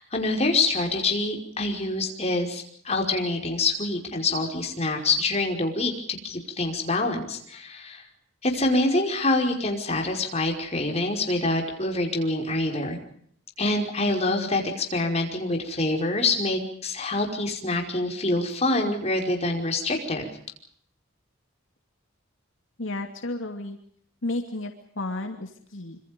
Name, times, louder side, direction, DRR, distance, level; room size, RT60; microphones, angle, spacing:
voice 1, 0.0-8.0 8.4-13.0 13.6-20.3, left 2 dB, 30° left, 2 dB, 5.3 m, -26 dB
voice 2, 22.8-23.8 24.2-26.0, left 2 dB, 70° left, 4 dB, 2.6 m, -32 dB
26.5 x 26.5 x 5.3 m, 0.64 s
head